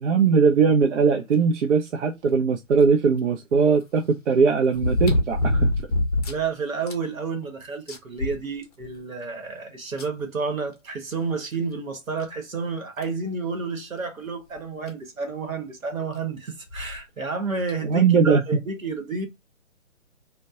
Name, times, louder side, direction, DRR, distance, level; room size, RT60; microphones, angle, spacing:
voice 1, 0.0-5.7 17.8-18.4, right 5 dB, 60° right, 0.5 m, -20 dB
sound 1, 2.8-2.9 4.7-6.5 6.9-7.0 7.4-7.5 7.9-9.0 10.0-10.1 11.5-11.6 12.2-12.3 13.0-13.2 14.6-14.7 14.9-15.0 16.7-17.0 17.7-17.8, left 1 dB, 30° left, 0.5 m, -24 dB
voice 2, 6.3-19.3, right 4 dB, 80° right, 1.0 m, -30 dB
2.6 x 2.1 x 2.3 m
figure-of-eight pair, 145°, 40 cm